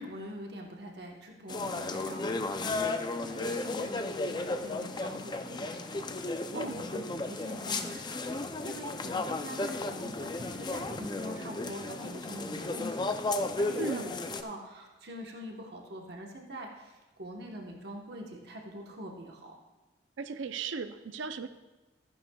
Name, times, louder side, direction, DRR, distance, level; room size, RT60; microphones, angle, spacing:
voice 1, 0.0-19.6, equal, 60° right, 0 dB, 1.1 m, -44 dB
sound 1, 1.5-14.4, left 2 dB, 25° left, 0.4 m, -34 dB
voice 2, 20.2-21.5, right 4 dB, 80° right, 10 dB, 0.5 m, -36 dB
14.0 x 10.5 x 2.3 m, 1.1 s
head